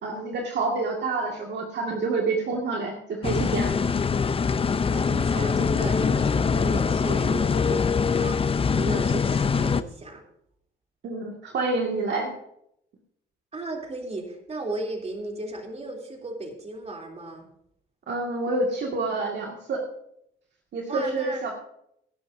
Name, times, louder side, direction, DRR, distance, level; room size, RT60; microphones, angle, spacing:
voice 1, 0.0-3.7 11.0-12.3 18.1-19.8 20.7-21.5, right 3 dB, 60° right, 0 dB, 2.0 m, -28 dB
sound 1, 3.2-9.8, left 5 dB, 30° left, 0.6 m, -23 dB
voice 2, 4.9-10.2 13.5-17.5 20.9-21.4, right 2 dB, 30° right, 1 dB, 3.2 m, -35 dB
19.0 x 11.0 x 2.7 m, 0.74 s
cardioid pair, 90°, 20 cm